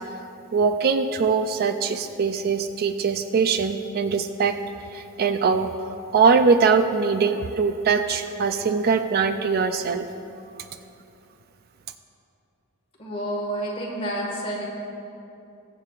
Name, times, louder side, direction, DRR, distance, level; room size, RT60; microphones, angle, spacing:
voice 1, 0.5-4.6 4.9-5.7 6.1-10.1, right 5 dB, 45° right, 8 dB, 0.3 m, -22 dB
voice 2, 13.0-14.6, right 1 dB, 25° left, -3 dB, 1.8 m, -29 dB
21.0 x 7.6 x 2.4 m, 2.7 s
head